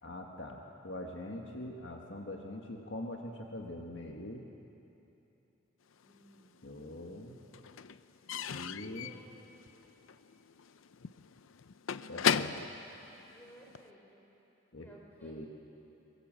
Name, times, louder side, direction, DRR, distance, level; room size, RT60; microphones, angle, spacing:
voice 1, 0.0-4.4 6.6-7.4 8.5-9.1 12.1-12.6 14.7-14.9 15.2-15.5, left 1 dB, 65° left, 1 dB, 1.7 m, -43 dB
Slam / Squeak / Wood, 6.0-6.9 7.1-13.9, left 7 dB, 80° left, 0.6 m, -37 dB
voice 2, 6.0-6.5 8.9-9.3 13.3-14.3 14.8-15.5, equal, 10° left, -3 dB, 5.2 m, -58 dB
24.0 x 21.0 x 7.7 m, 3.0 s
head